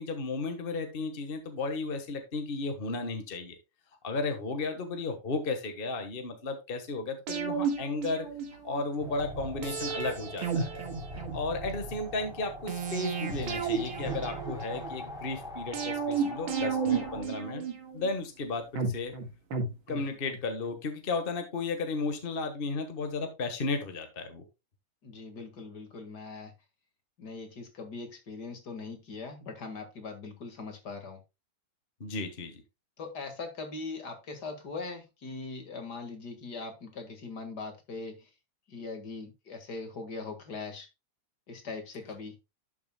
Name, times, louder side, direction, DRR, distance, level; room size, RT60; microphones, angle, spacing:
voice 1, 0.0-3.5 4.0-8.3 8.6-10.8 11.1-17.6 17.9-19.1 19.9-24.4 32.0-32.6, left 3 dB, 30° left, 6 dB, 1.5 m, -34 dB
sound 1, 7.3-8.8 9.6-11.8 12.7-14.9 15.7-18.1 18.8-20.4 20.7-20.8, right 6 dB, 85° right, 2.5 m, -33 dB
sound 2, 9.0-17.2, equal, ahead, 3.3 m, -41 dB
voice 2, 25.0-26.5 27.2-31.2 33.0-38.3 38.7-40.9 41.5-42.3, left 3 dB, 55° left, 6 dB, 2.4 m, -41 dB
12.0 x 6.9 x 2.2 m, 0.25 s
omnidirectional pair, 2.1 m